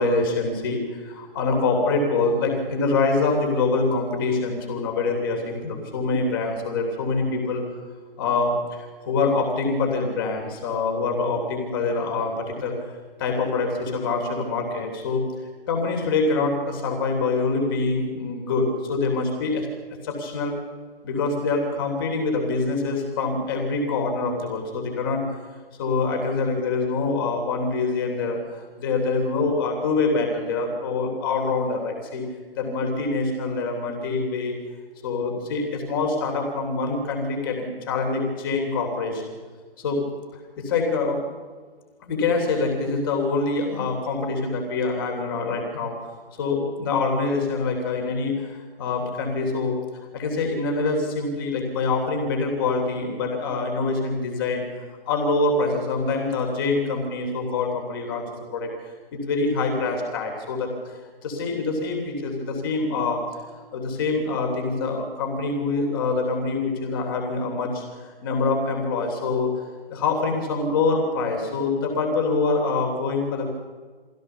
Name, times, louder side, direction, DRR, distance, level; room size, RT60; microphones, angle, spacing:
voice 1, 0.0-7.6 8.2-12.7 13.2-15.2 15.7-19.7 20.0-20.5 21.0-25.2 25.8-32.2 32.6-34.5 35.0-39.3 39.8-40.0 40.6-41.2 42.1-46.1 46.4-49.7 50.1-54.6 54.9-58.2 58.5-58.7 59.1-63.2 63.7-73.5, left 3 dB, 20° left, 2 dB, 3.2 m, -25 dB
23.5 x 16.5 x 6.9 m, 1.5 s
figure-of-eight pair, 145°, 30 cm